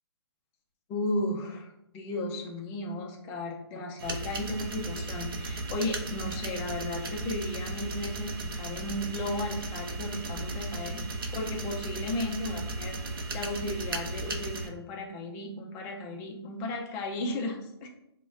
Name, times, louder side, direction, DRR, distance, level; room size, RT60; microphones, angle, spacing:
voice 1, 0.9-11.0 11.3-13.0 13.3-17.9, left 1 dB, 15° left, 1 dB, 0.4 m, -35 dB
sound 1, 4.0-14.7, right 2 dB, 55° right, 0.6 m, -36 dB
5.9 x 2.1 x 2.4 m, 0.83 s
hypercardioid pair, 150°, 14 cm